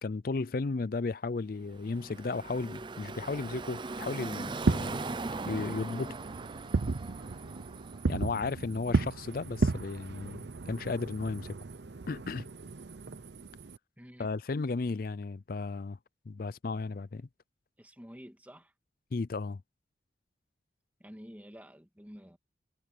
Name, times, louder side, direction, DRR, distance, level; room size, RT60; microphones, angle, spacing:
voice 1, 0.0-5.0 5.5-6.2 8.1-11.6 12.1-12.5 14.2-16.0 16.3-17.3 19.1-19.6, left 3 dB, 50° left, 0.4 m, -34 dB
Car passing by / Traffic noise roadway noise, 1.6-8.6, right 3 dB, 25° right, 0.5 m, -40 dB
Fireworks, 4.5-13.8, right 3 dB, 65° right, 0.7 m, -34 dB
voice 2, 14.0-14.3 17.8-18.7 21.0-22.4, equal, 10° right, 2.0 m, -50 dB
head